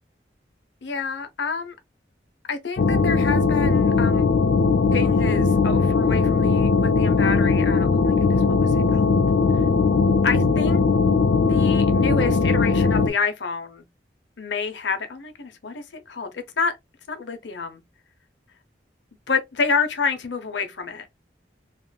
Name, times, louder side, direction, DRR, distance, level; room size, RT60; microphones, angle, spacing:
voice 1, 0.8-1.7 2.5-4.3 4.9-9.2 10.2-10.8 11.4-13.8 14.4-16.7 17.1-17.8 19.3-21.1, left 5 dB, 90° left, 0.7 m, -28 dB
sound 1, 2.8-13.1, left 4 dB, 60° left, 0.4 m, -19 dB
3.6 x 2.5 x 2.3 m
head